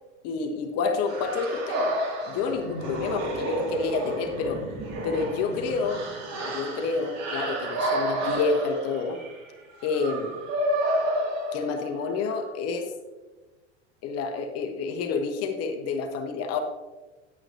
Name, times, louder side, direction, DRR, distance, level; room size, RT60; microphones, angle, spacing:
voice 1, 0.2-2.0 2.3-4.6 5.0-6.0 6.5-9.2 9.8-10.3 11.5-12.9 14.0-16.6, left 4 dB, 45° left, 5 dB, 1.1 m, -29 dB
sound 1, 1.1-12.1, right 1 dB, 50° right, 2.2 m, -30 dB
9.5 x 8.7 x 2.7 m, 1.2 s
hypercardioid pair, 95°, 36 cm